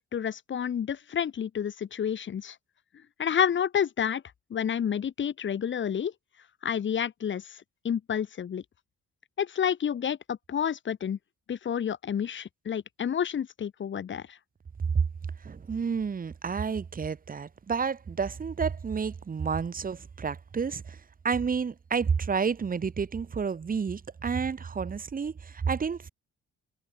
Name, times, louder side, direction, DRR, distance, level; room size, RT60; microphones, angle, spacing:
voice 1, 0.0-2.6 3.2-4.2 4.5-6.1 6.6-7.6 7.8-8.6 9.4-11.2 11.5-14.4, left 8 dB, 40° left, 0.9 m, -29 dB
voice 2, 15.4-21.0 21.2-26.1, right 6 dB, 30° right, 0.9 m, -30 dB
cardioid pair, 90°, 30 cm